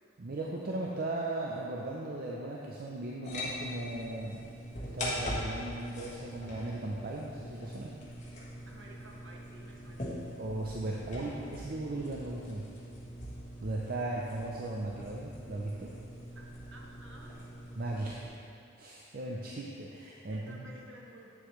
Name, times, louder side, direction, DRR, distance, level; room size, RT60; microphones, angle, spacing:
voice 1, 0.2-7.9 10.4-12.7 13.6-16.0 17.8-18.2 18.8-20.6, right 2 dB, 45° right, -3 dB, 0.5 m, -37 dB
sound 1, 3.2-18.3, left 1 dB, 35° left, 1.3 m, -42 dB
voice 2, 8.6-10.2 16.3-17.5 17.8-17.9 20.3-21.3, right 1 dB, 60° right, -2 dB, 1.1 m, -53 dB
8.6 x 7.3 x 3.1 m, 2.5 s
head